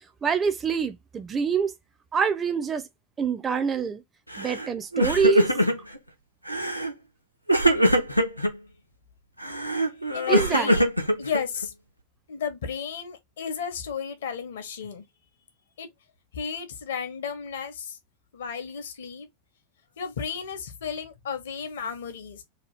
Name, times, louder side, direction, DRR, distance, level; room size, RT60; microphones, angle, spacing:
voice 1, 0.2-1.7 2.1-2.8 3.2-4.0 4.4-5.5 10.3-10.7, right 6 dB, 20° right, 0.4 m, -25 dB
Crying sobbing, 4.3-4.7 4.9-6.0 6.5-6.9 7.5-8.5 9.4-11.7, equal, 90° right, 0.6 m, -23 dB
voice 2, 10.1-10.9 11.2-11.7 12.3-15.0 15.8-15.9 16.3-18.0 18.3-19.3 20.0-22.4, left 6 dB, 60° left, 0.7 m, -33 dB
2.8 x 2.3 x 3.3 m
figure-of-eight pair, 90°, 0 cm